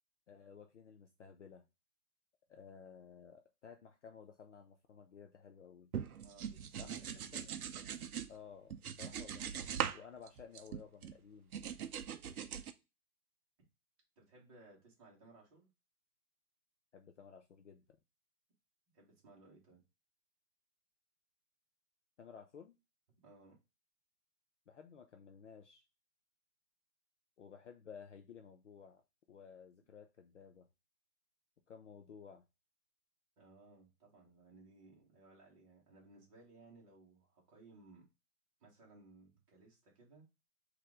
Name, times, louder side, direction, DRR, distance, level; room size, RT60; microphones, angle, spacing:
voice 1, 0.3-1.6 2.5-5.9 6.8-7.1 7.3-7.6 8.3-11.5 16.9-17.9 22.2-22.7 24.7-25.8 27.4-29.0 29.3-30.7 31.7-32.4, left 6 dB, 50° left, 5 dB, 0.5 m, -55 dB
sound 1, 5.9-8.3 8.7-10.0 10.3-11.1 11.5-12.7, right 8 dB, 65° right, 0.6 m, -41 dB
voice 2, 6.2-7.3 14.2-15.7 18.9-19.8 23.2-23.6 33.4-38.0 38.6-40.2, right 3 dB, 20° right, -3 dB, 1.3 m, -61 dB
4.3 x 2.6 x 3.5 m, 0.27 s
hypercardioid pair, 155°, 47 cm